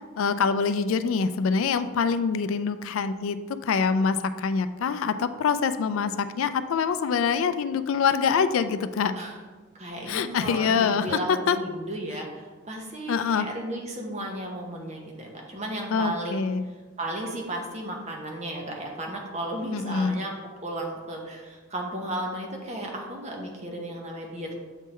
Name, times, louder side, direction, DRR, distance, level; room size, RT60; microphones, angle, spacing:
voice 1, 0.2-9.1 10.1-11.6 13.1-13.5 15.9-16.6 19.7-20.2, left 6 dB, 75° left, 12 dB, 0.3 m, -25 dB
voice 2, 9.8-16.5 17.0-20.3 20.6-24.5, right 1 dB, 35° right, 0 dB, 1.0 m, -34 dB
7.2 x 3.7 x 4.2 m, 1.4 s
head